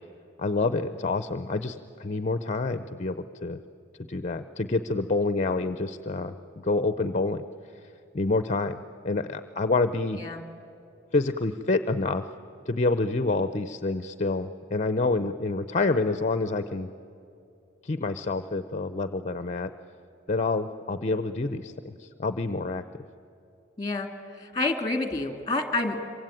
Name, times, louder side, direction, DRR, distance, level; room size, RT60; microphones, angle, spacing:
voice 1, 0.4-3.6 4.1-7.4 8.1-10.2 11.1-12.2 12.7-16.9 17.8-19.7 20.3-22.8, left 3 dB, 40° left, 11 dB, 0.7 m, -27 dB
voice 2, 23.8-24.1 24.4-26.0, left 2 dB, 20° left, 6 dB, 2.3 m, -28 dB
26.5 x 24.0 x 9.1 m, 2.7 s
head